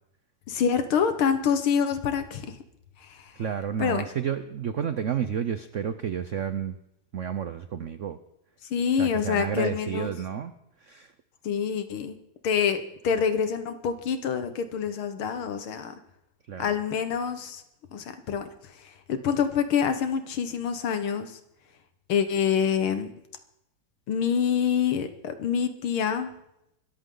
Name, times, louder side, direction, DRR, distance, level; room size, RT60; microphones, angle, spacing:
voice 1, 0.5-2.6 3.0-3.3 3.8-4.0 8.7-10.1 11.4-12.2 12.4-15.9 16.6-17.6 17.9-18.5 19.1-21.4 22.1-23.1 24.1-26.3, left 7 dB, 85° left, 9 dB, 2.2 m, -26 dB
voice 2, 3.4-6.8 7.1-8.2 9.0-10.5 10.8-11.1 16.5-16.7, right 8 dB, 75° right, 11 dB, 0.6 m, -31 dB
23.0 x 13.5 x 3.9 m, 0.82 s
omnidirectional pair, 2.3 m